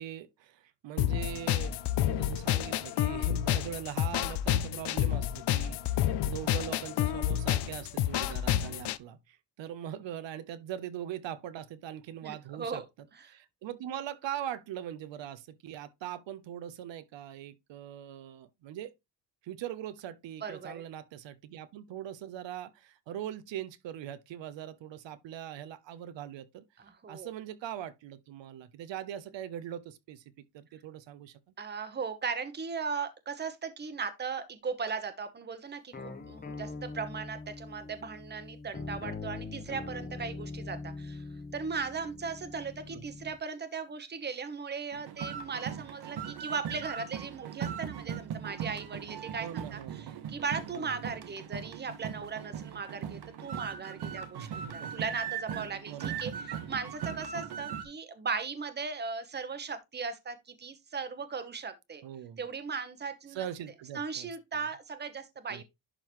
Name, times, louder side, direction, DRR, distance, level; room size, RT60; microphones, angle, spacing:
voice 1, 0.0-12.8 13.3-18.9 19.4-26.6 27.1-30.2 30.5-31.4 42.9-43.0 49.4-50.1 50.7-50.9 54.3-54.9 55.9-56.4 62.0-62.4 63.3-64.3 65.5-65.6, right 11 dB, 75° right, 0.8 m, -41 dB
sound 1, 1.0-9.0, left 12 dB, 65° left, 0.6 m, -29 dB
voice 2, 12.2-12.9 13.1-13.3 20.4-20.8 26.8-27.3 31.6-41.2 41.5-62.0 62.4-63.5 63.9-65.6, right 5 dB, 25° right, 1.0 m, -38 dB
sound 2, 35.9-43.4, left 3 dB, 20° left, 1.0 m, -42 dB
sound 3, 44.9-57.8, right 8 dB, 60° right, 1.2 m, -39 dB
11.0 x 3.8 x 3.1 m
cardioid pair, 150°, 44 cm